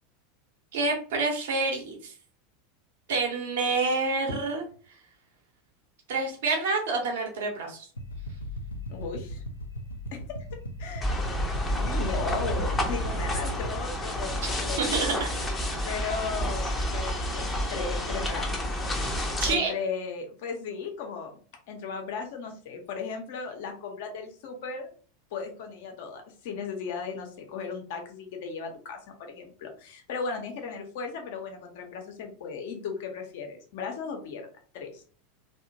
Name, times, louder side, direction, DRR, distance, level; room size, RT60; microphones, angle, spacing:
voice 1, 0.7-2.1 3.1-4.6 6.1-7.9 14.8-15.3 19.4-19.7, right 3 dB, 60° right, 2 dB, 0.8 m, -27 dB
sound 1, 8.0-13.7, left 1 dB, 80° left, 0.4 m, -37 dB
voice 2, 8.9-9.4 10.1-10.2 10.8-11.2 11.7-15.2 15.8-18.5 19.5-21.4 21.7-24.9 25.3-34.5 34.7-35.0, left 5 dB, 55° left, 4 dB, 0.7 m, -36 dB
sound 2, 11.0-19.5, equal, 15° left, 0.6 m, -29 dB
2.8 x 2.1 x 2.6 m, 0.41 s
figure-of-eight pair, 85°, 0 cm